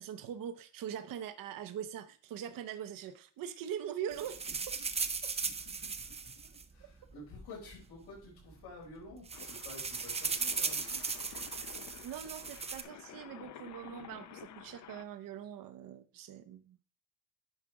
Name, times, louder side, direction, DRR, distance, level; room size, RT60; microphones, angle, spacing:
voice 1, 0.0-4.4 4.7-4.8 12.0-16.8, right 9 dB, 55° right, 10 dB, 0.7 m, -42 dB
sound 1, 4.1-7.3 8.2-8.3 8.5-8.7 9.0-12.8, right 5 dB, 15° right, 0.4 m, -37 dB
voice 2, 5.2-11.0, left 2 dB, 80° left, -3 dB, 5.3 m, -51 dB
sound 2, 9.3-15.0, left 9 dB, 45° left, 0.6 m, -51 dB
10.0 x 4.9 x 4.7 m, 0.42 s
cardioid pair, 175°, 40 cm